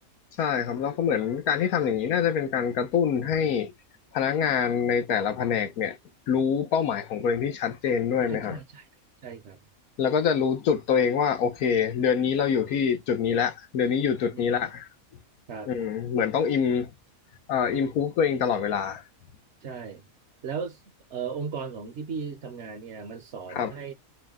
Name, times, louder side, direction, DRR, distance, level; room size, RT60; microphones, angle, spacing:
voice 1, 0.4-3.7 4.1-6.0 6.3-8.6 10.0-14.9 15.7-16.9 17.5-19.0 23.6-23.7, left 7 dB, 90° left, 1.3 m, -25 dB
voice 2, 8.2-8.9 9.2-9.6 14.3-14.7 15.5-15.7 19.6-20.1 20.4-20.8 21.1-23.9, right 6 dB, 60° right, 1.0 m, -36 dB
4.5 x 2.2 x 3.6 m
omnidirectional pair, 1.5 m